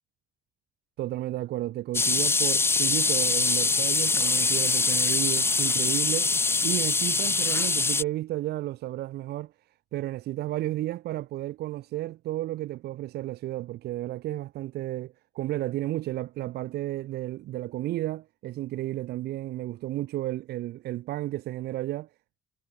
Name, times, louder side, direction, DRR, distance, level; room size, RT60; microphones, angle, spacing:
voice 1, 1.0-9.5 9.9-22.1, right 15 dB, 75° right, 2.3 m, -32 dB
sound 1, 1.9-8.0, left 3 dB, 15° left, 0.5 m, -24 dB
cardioid pair, 110°, 17 cm